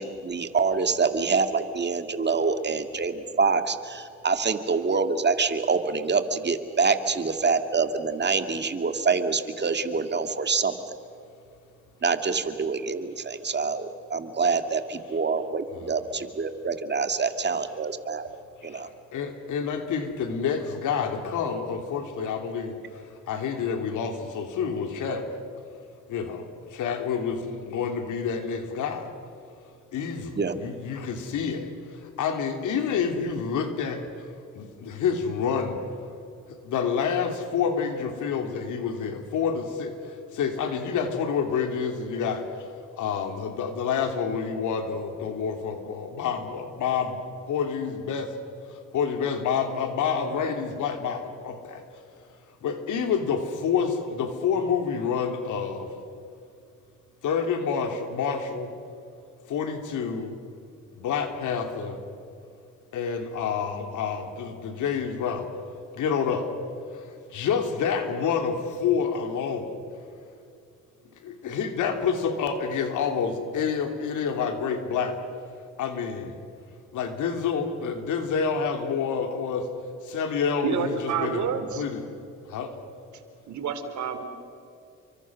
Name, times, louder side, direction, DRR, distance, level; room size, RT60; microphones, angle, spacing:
voice 1, 0.0-10.7 12.0-18.3 18.6-18.9 30.4-30.5, right 4 dB, 35° right, 8 dB, 2.1 m, -26 dB
voice 2, 18.7-25.4 26.1-29.1 29.9-34.0 34.5-35.8 36.6-42.7 43.0-48.3 48.6-51.8 52.6-55.9 57.2-58.7 59.5-60.4 60.9-62.0 62.9-65.5 65.9-66.5 66.9-69.8 71.2-75.2 75.8-76.4 76.9-79.7 80.0-81.4 81.7-82.0 82.4-82.7, left 6 dB, 80° left, 5 dB, 3.2 m, -28 dB
voice 3, 80.6-81.8 83.5-84.3, right 7 dB, 70° right, 8 dB, 3.2 m, -29 dB
29.5 x 24.5 x 6.4 m, 2.5 s
cardioid pair, 90°, 30 cm